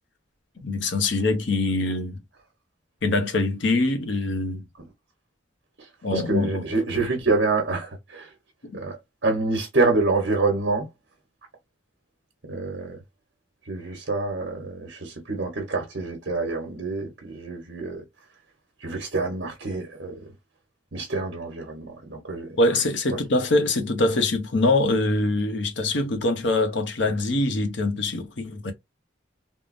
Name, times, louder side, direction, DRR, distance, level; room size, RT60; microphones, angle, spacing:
voice 1, 0.6-2.2 3.0-4.6 6.0-6.6 8.6-8.8 22.6-28.7, left 2 dB, 70° left, 0.8 m, -24 dB
voice 2, 6.1-8.3 8.7-10.9 12.5-13.0 13.7-18.0 18.8-20.2 20.9-22.6, right 3 dB, 65° right, 1.0 m, -27 dB
3.6 x 2.0 x 2.5 m
head